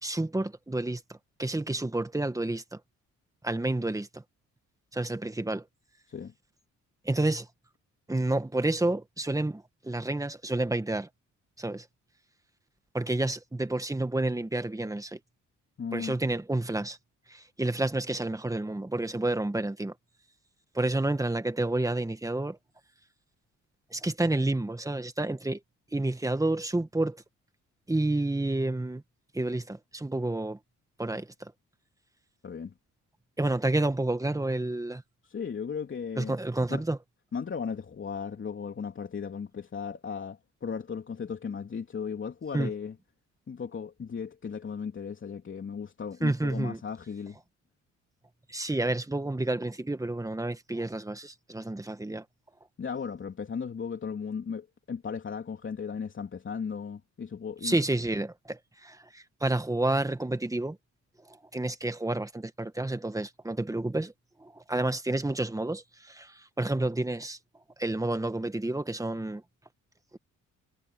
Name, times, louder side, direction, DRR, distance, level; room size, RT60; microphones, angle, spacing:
voice 1, 0.0-2.8 3.4-4.2 4.9-5.7 7.0-7.5 8.1-11.1 11.6-11.9 12.9-15.2 15.9-17.0 17.3-19.9 20.7-22.6 23.9-25.6 25.9-27.2 27.9-29.0 29.3-30.6 31.0-31.5 33.4-35.0 36.2-37.0 42.5-42.7 46.2-46.8 48.5-52.2 57.6-60.8 61.3-64.1 64.4-67.4 67.8-69.4, right 2 dB, 10° right, 1.9 m, -30 dB
voice 2, 15.8-16.2 32.4-32.7 35.3-36.3 36.7-36.8 37.3-42.9 43.5-47.4 52.8-57.8, left 6 dB, 40° left, 3.4 m, -36 dB
cardioid pair, 90°, 30 cm